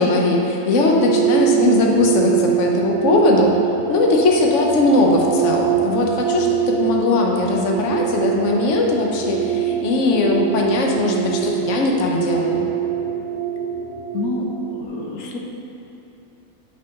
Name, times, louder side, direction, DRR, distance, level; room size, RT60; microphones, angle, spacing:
voice 1, 0.0-3.6 3.9-12.7, left 2 dB, 60° left, 0 dB, 1.2 m, -19 dB
sound 1, 1.0-14.8, right 10 dB, 60° right, 0.9 m, -23 dB
voice 2, 14.1-15.4, left 3 dB, 90° left, 1 dB, 1.3 m, -28 dB
8.2 x 4.5 x 5.3 m, 2.9 s
omnidirectional pair, 1.5 m